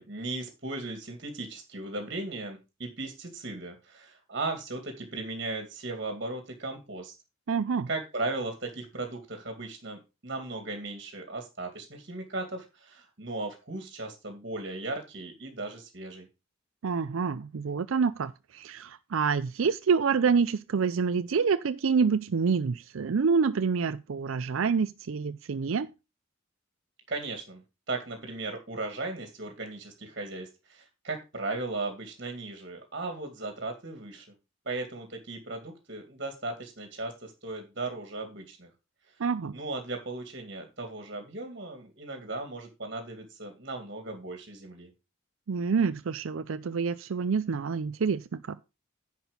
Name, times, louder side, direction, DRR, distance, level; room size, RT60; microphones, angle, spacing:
voice 1, 0.0-7.1 7.9-16.3 27.1-27.6 27.9-34.3 34.7-38.7 39.5-44.9, right 2 dB, 50° right, 2.4 m, -37 dB
voice 2, 7.5-7.9 16.8-25.9 39.2-39.5 45.5-48.6, right 5 dB, 80° right, 0.5 m, -27 dB
10.5 x 6.1 x 5.3 m
head